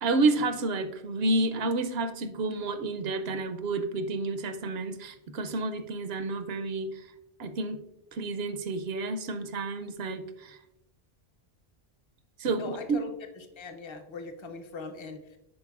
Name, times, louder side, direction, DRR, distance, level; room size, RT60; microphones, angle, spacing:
voice 1, 0.0-7.0 7.4-7.8 8.1-10.6 12.4-13.0, right 3 dB, 80° right, 10 dB, 0.9 m, -30 dB
voice 2, 12.5-13.1 13.4-15.4, left 3 dB, 35° left, 6 dB, 0.6 m, -41 dB
10.5 x 4.4 x 2.3 m, 0.88 s
omnidirectional pair, 1.0 m